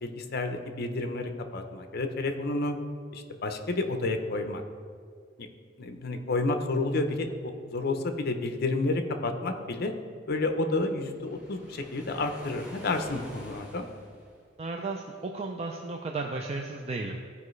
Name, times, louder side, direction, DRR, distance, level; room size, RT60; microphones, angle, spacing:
voice 1, 0.0-2.7 3.1-4.6 5.4-5.5 5.8-9.9 10.3-13.9, left 2 dB, 55° left, 6 dB, 0.7 m, -30 dB
Waves surf, 11.0-14.5, equal, 5° right, 2.1 m, -48 dB
voice 2, 14.6-17.2, right 3 dB, 35° right, 2 dB, 0.4 m, -34 dB
14.0 x 4.8 x 3.2 m, 2.1 s
head